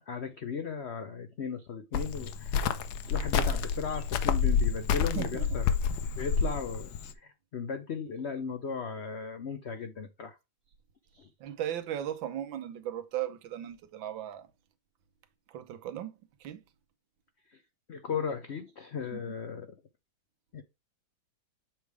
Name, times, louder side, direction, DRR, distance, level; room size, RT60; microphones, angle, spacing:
voice 1, 0.1-2.7 3.1-5.7 6.1-10.4 11.1-11.3 17.5-17.6 17.9-19.7 20.5-20.6, left 6 dB, 85° left, 0.5 m, -36 dB
Cricket, 1.9-7.1, left 6 dB, 65° left, 1.1 m, -29 dB
voice 2, 5.1-5.6 11.4-14.5 15.5-16.6 19.1-19.3, right 11 dB, 80° right, 1.5 m, -37 dB
7.3 x 3.4 x 4.7 m
omnidirectional pair, 2.1 m